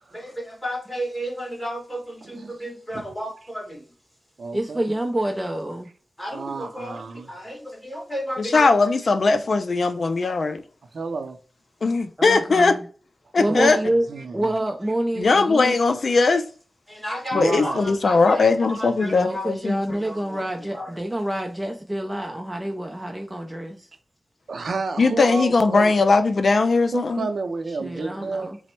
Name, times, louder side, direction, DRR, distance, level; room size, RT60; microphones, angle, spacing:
voice 1, 0.1-3.8 6.2-8.8 15.7-15.9 16.9-21.0, equal, 10° left, 1.9 m, -33 dB
voice 2, 2.2-2.5 2.9-3.0 4.4-4.8 6.3-7.3 10.9-11.4 13.4-13.7 14.1-14.5 17.3-17.8 24.5-25.9 26.9-28.5, right 3 dB, 75° right, 0.5 m, -30 dB
voice 3, 4.5-5.9 12.2-12.8 13.4-14.1 14.3-15.7 19.0-23.9 27.7-28.6, right 1 dB, 15° right, 0.5 m, -27 dB
voice 4, 8.4-10.6 11.8-12.8 13.3-13.8 15.2-16.5 17.3-19.8 25.0-27.3, left 3 dB, 65° left, 0.4 m, -19 dB
4.1 x 2.1 x 4.3 m
wide cardioid pair, 95°, 0 cm